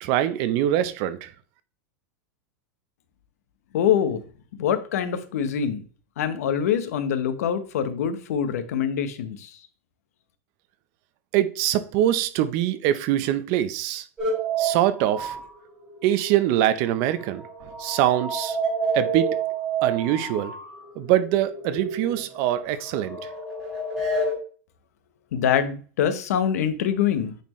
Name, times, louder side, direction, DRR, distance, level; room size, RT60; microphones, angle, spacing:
voice 1, 0.0-1.3 11.3-14.0 14.6-15.4 16.0-17.4 17.8-18.6 18.9-19.4 19.8-20.6 21.0-23.2, right 12 dB, 40° right, 0.6 m, -23 dB
voice 2, 3.7-4.2 4.5-5.8 6.2-9.6 25.3-27.3, left 8 dB, 75° left, 1.0 m, -24 dB
sound 1, 14.2-16.7 17.0-24.3, right 3 dB, 10° right, 3.5 m, -29 dB
9.1 x 4.3 x 3.1 m
supercardioid pair, 170°, 8 cm